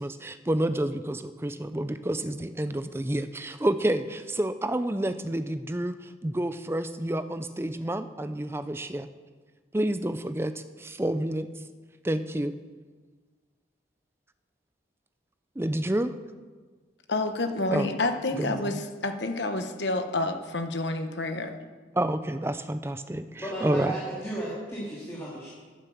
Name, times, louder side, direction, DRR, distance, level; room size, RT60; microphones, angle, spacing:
voice 1, 0.0-9.1 9.7-11.5 12.0-12.5 15.6-16.1 17.7-17.9 18.4-18.8 21.9-24.0, right 1 dB, 15° right, 11 dB, 0.4 m, -29 dB
voice 2, 17.1-21.6, left 2 dB, 70° left, 7 dB, 1.2 m, -29 dB
voice 3, 23.4-25.5, right 1 dB, 15° left, -7 dB, 2.7 m, -34 dB
13.0 x 9.3 x 7.1 m, 1.5 s
head